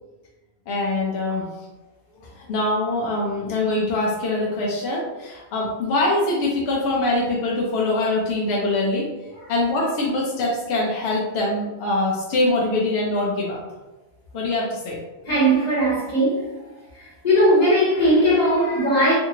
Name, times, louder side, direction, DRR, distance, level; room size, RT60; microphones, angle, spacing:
voice 1, 0.7-1.4 2.2-9.1 9.5-13.6 14.3-15.0, left 2 dB, 85° left, 0.8 m, -23 dB
voice 2, 15.2-16.5 16.9-19.2, equal, 40° left, 1.2 m, -19 dB
2.7 x 2.5 x 2.7 m
omnidirectional pair, 1.1 m